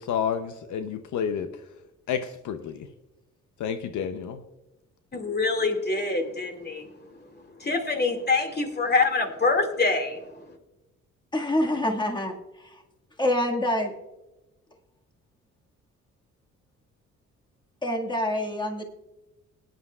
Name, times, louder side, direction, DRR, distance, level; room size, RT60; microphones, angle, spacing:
voice 1, 0.0-1.5 2.1-2.9 3.6-4.4, left 8 dB, 75° left, 0.8 m, -30 dB
voice 2, 5.1-6.8 7.6-10.2, left 3 dB, 35° left, 2.3 m, -25 dB
voice 3, 11.3-12.3 12.6-12.8 13.2-13.9 17.8-18.8, left 1 dB, 15° left, 1.8 m, -26 dB
19.0 x 10.0 x 2.4 m
cardioid pair, 90°, 30 cm